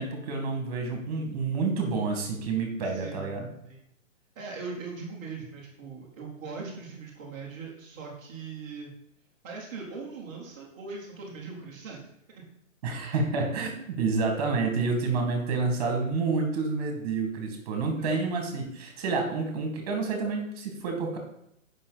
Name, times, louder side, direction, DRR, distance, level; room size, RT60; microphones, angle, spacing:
voice 1, 0.0-3.5 12.8-21.2, right 4 dB, 30° right, 3 dB, 1.7 m, -29 dB
voice 2, 2.8-3.3 3.6-3.8 4.4-8.9 9.4-12.4 18.0-18.2, right 4 dB, 15° right, -8 dB, 0.7 m, -40 dB
7.5 x 5.4 x 3.9 m, 0.75 s
hypercardioid pair, 165°, 39 cm